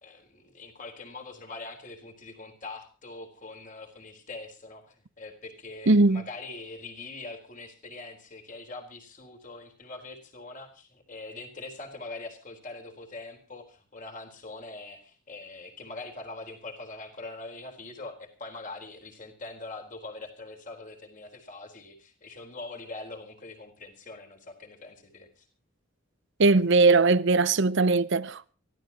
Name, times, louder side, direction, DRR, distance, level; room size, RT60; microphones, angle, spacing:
voice 1, 0.0-25.5, left 3 dB, 35° left, 4.0 m, -43 dB
voice 2, 5.9-6.2 26.4-28.5, right 3 dB, 55° right, 0.7 m, -20 dB
24.0 x 15.5 x 2.9 m
head